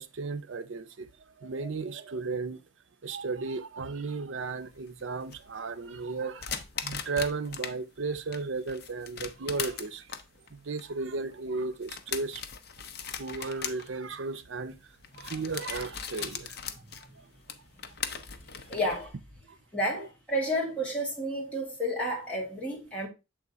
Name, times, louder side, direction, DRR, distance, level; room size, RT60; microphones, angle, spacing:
voice 1, 0.0-2.6 3.0-6.5 6.8-10.1 10.5-12.4 13.2-14.7 15.1-16.6 16.9-17.3 19.5-19.6 20.0-20.1, right 4 dB, 75° right, 0.6 m, -35 dB
sound 1, 4.4-7.8 8.1-19.1, left 7 dB, 55° left, 0.7 m, -39 dB
voice 2, 18.7-19.1 19.7-23.1, equal, 5° left, 2.1 m, -31 dB
7.5 x 3.6 x 4.0 m
head